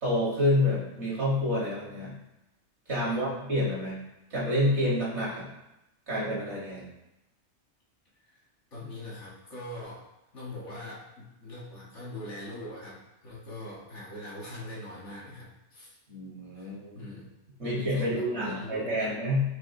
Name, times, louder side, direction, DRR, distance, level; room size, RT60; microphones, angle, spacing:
voice 1, 0.0-2.1 2.9-4.0 4.3-5.5 6.1-6.9 16.1-17.0 17.6-19.4, left 1 dB, 70° right, -6 dB, 1.9 m, -28 dB
voice 2, 8.7-10.0 10.3-15.9 16.5-17.3 17.6-19.1, left 1 dB, 85° left, -5 dB, 1.7 m, -42 dB
5.7 x 3.3 x 2.7 m, 0.93 s
omnidirectional pair, 1.2 m